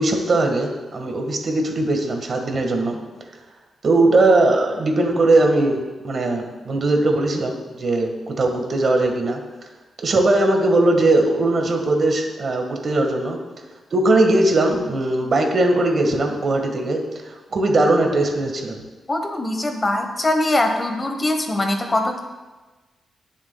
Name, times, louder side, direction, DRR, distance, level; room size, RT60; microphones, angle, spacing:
voice 1, 0.0-3.0 3.8-9.4 10.0-13.4 13.9-18.8, right 2 dB, 50° right, 3 dB, 1.5 m, -19 dB
voice 2, 19.1-22.2, left 1 dB, 25° left, 4 dB, 1.0 m, -22 dB
18.0 x 7.3 x 2.3 m, 1.2 s
wide cardioid pair, 130°, 0 cm